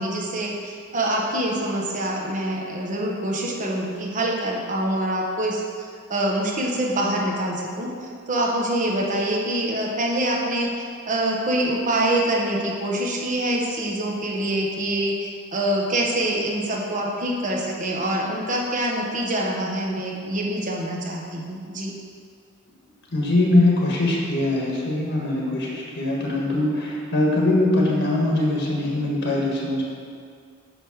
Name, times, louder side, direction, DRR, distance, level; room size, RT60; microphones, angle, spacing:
voice 1, 0.0-21.9, right 1 dB, 40° right, -2 dB, 1.2 m, -25 dB
voice 2, 23.1-29.8, left 2 dB, 55° left, -3 dB, 1.6 m, -22 dB
9.4 x 3.6 x 6.4 m, 2.1 s
head